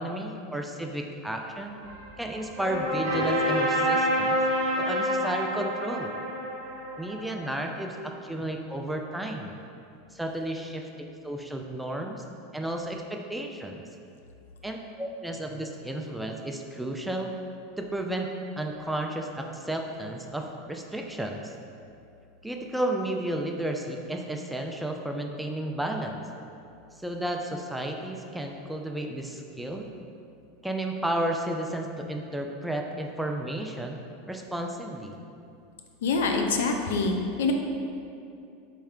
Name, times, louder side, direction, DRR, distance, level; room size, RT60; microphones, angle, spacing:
voice 1, 0.0-1.8 2.2-4.4 4.8-6.1 7.0-9.5 10.1-10.8 11.2-12.2 12.5-13.8 14.6-17.3 17.8-18.3 18.6-21.5 22.4-26.2 27.0-29.9 30.6-34.0 34.3-35.1, right 1 dB, 5° right, 2 dB, 0.3 m, -32 dB
sound 1, 1.8-7.8, equal, 65° right, 0.8 m, -28 dB
voice 2, 36.0-37.5, left 4 dB, 80° left, 3 dB, 0.3 m, -25 dB
4.3 x 2.1 x 3.6 m, 2.6 s
hypercardioid pair, 100°, 0 cm